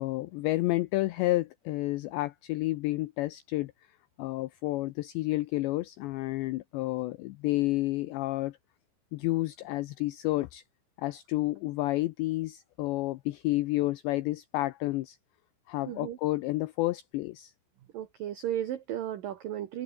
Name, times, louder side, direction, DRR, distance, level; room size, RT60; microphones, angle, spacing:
voice 1, 0.0-3.7 4.2-8.6 9.1-10.6 11.0-15.2 15.7-17.5, left 18 dB, 90° left, 2.5 m, -30 dB
voice 2, 15.9-16.2 17.9-19.8, right 11 dB, 90° right, 1.9 m, -34 dB
omnidirectional pair, 6.0 m